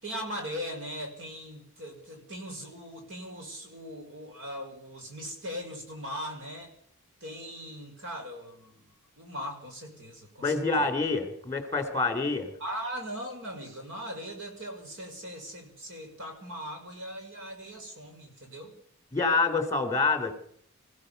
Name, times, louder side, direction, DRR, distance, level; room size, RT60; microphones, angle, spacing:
voice 1, 0.0-6.7 7.2-10.9 12.6-18.8, equal, 60° right, 3 dB, 5.8 m, -40 dB
voice 2, 10.4-12.5 19.1-20.3, left 3 dB, 15° left, 7 dB, 3.9 m, -27 dB
26.5 x 16.0 x 6.9 m, 0.66 s
head